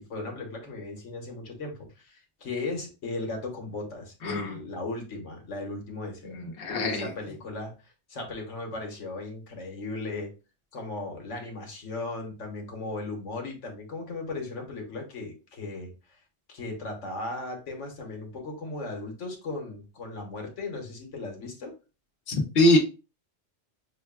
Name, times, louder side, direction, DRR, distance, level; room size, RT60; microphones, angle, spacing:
voice 1, 0.0-6.3 6.7-10.3 10.7-16.2 16.5-21.7, left 2 dB, 90° left, 1 dB, 1.4 m, -37 dB
voice 2, 4.2-4.5 6.2-7.1 22.3-22.8, left 1 dB, 55° left, 0 dB, 1.1 m, -23 dB
6.1 x 2.3 x 2.2 m, 0.32 s
omnidirectional pair, 1.2 m